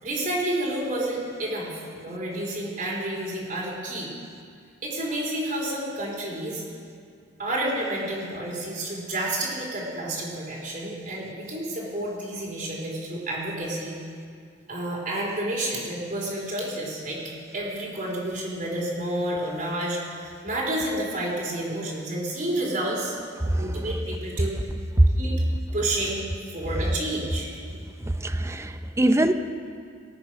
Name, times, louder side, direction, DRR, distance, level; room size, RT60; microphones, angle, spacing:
voice 1, 0.0-4.1 4.8-6.6 7.4-13.9 14.7-17.2 17.5-23.2 23.6-24.5 25.2-25.4 25.7-26.2 26.5-27.5, right 1 dB, 50° right, -4 dB, 4.0 m, -30 dB
voice 2, 28.2-29.3, right 1 dB, 15° right, 9 dB, 0.6 m, -23 dB
19.5 x 8.8 x 6.1 m, 2.3 s
head